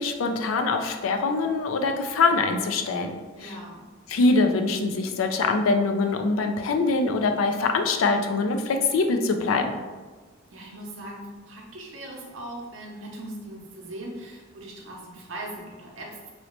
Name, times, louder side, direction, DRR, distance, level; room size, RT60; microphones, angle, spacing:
voice 1, 0.0-3.1 3.4-3.5 4.1-9.7, left 3 dB, 90° left, 5 dB, 0.4 m, -23 dB
voice 2, 3.4-3.8 10.5-16.3, right 1 dB, 70° right, -2 dB, 0.7 m, -39 dB
3.1 x 2.9 x 2.9 m, 1.3 s
head